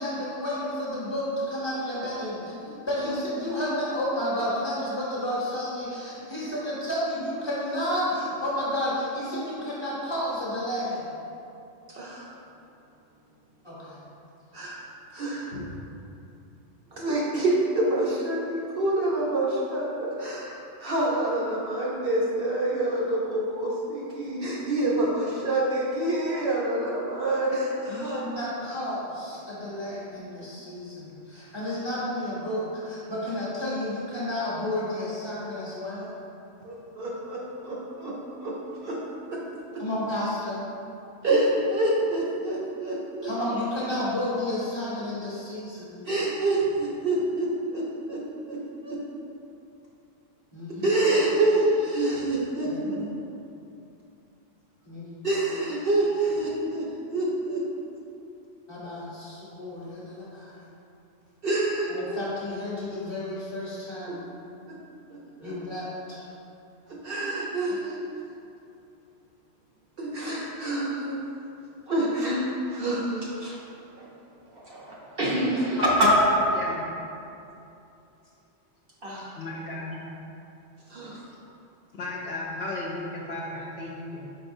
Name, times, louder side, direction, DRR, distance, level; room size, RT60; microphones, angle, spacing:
voice 1, 0.0-11.1 13.6-14.0 15.5-15.7 27.9-36.1 39.8-40.7 43.2-46.0 50.5-50.9 52.6-53.1 54.8-55.1 58.7-60.5 61.9-64.3 65.4-66.3, left 1 dB, 25° left, -8 dB, 0.8 m, -31 dB
voice 2, 11.9-12.3 14.5-14.8 15.1-15.6 16.9-28.2 36.6-38.6 38.8-39.0 39.3-39.4 41.2-43.3 46.1-48.2 48.5-49.0 50.8-52.7 55.2-56.8 57.1-57.6 61.4-62.2 64.1-64.2 65.4-65.5 66.9-68.0 70.0-71.2 71.9-73.6 73.9-74.0 74.5-76.2 79.0-79.3 80.9-81.2, right 1 dB, 55° right, -5 dB, 0.7 m, -27 dB
voice 3, 79.4-80.0 82.0-84.4, left 2 dB, 65° left, -3 dB, 0.8 m, -34 dB
4.4 x 4.2 x 2.6 m, 2.8 s
omnidirectional pair, 1.3 m